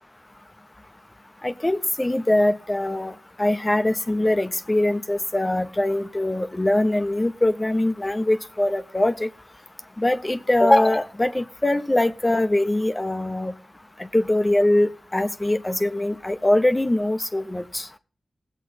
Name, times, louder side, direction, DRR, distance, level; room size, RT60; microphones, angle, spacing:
voice 1, 1.4-3.1 3.4-9.3 10.0-13.5 14.1-17.8, left 1 dB, 20° left, 9 dB, 0.7 m, -22 dB
18.5 x 8.1 x 4.1 m, 0.42 s
wide cardioid pair, 75°, 0 cm